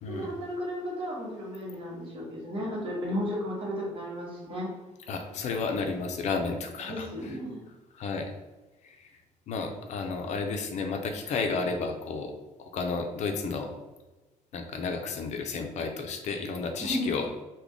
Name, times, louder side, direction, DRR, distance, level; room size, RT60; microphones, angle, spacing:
voice 1, 0.1-4.7 6.9-7.6 16.8-17.1, equal, 40° right, -4 dB, 1.3 m, -34 dB
voice 2, 5.1-7.1 8.0-8.3 8.8-9.1 9.5-12.3 12.6-13.7 14.5-17.3, left 4 dB, 60° left, 5 dB, 0.4 m, -32 dB
3.6 x 2.2 x 3.4 m, 1.2 s
cardioid pair, 135°, 13 cm